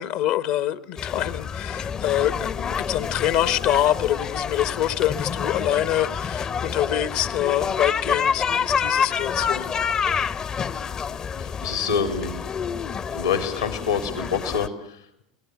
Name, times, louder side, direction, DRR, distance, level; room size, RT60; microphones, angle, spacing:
voice 1, 0.0-9.7, left 12 dB, 55° left, 1.2 m, -25 dB
sound 1, 1.0-14.7, left 7 dB, 30° left, 0.9 m, -28 dB
voice 2, 11.4-12.3 13.1-15.2, left 6 dB, 80° left, 3.4 m, -26 dB
27.0 x 18.5 x 8.2 m
figure-of-eight pair, 75°, 2 cm